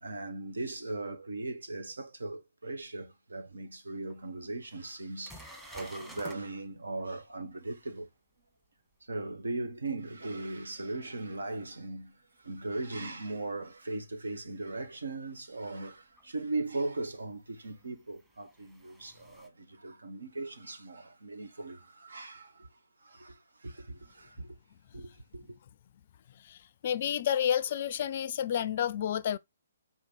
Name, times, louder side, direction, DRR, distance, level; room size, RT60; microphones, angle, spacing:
voice 1, 0.0-8.1 9.0-22.7 23.0-24.5 24.9-25.6, right 2 dB, 70° right, 1.4 m, -38 dB
sound 1, 4.1-4.2 4.7-4.8 5.2-6.4 11.5-11.6 14.4-14.5 16.2-16.3 17.6-19.5, equal, 5° right, 1.3 m, -50 dB
voice 2, 26.4-29.4, left 9 dB, 45° left, 0.4 m, -30 dB
5.1 x 4.4 x 4.6 m
figure-of-eight pair, 135°, 0 cm